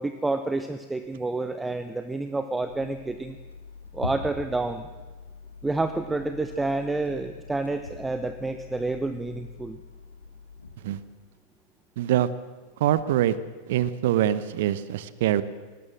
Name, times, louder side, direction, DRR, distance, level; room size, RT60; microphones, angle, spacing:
voice 1, 0.0-3.4 3.9-4.9 5.6-9.8, right 2 dB, 10° right, 10 dB, 0.8 m, -29 dB
sound 1, 2.6-11.3, left 4 dB, 75° left, 1.6 m, -43 dB
voice 2, 12.0-12.3 12.8-13.4 13.7-15.4, right 12 dB, 55° right, 16 dB, 0.9 m, -24 dB
19.0 x 19.0 x 7.5 m, 1.4 s
figure-of-eight pair, 90°, 0 cm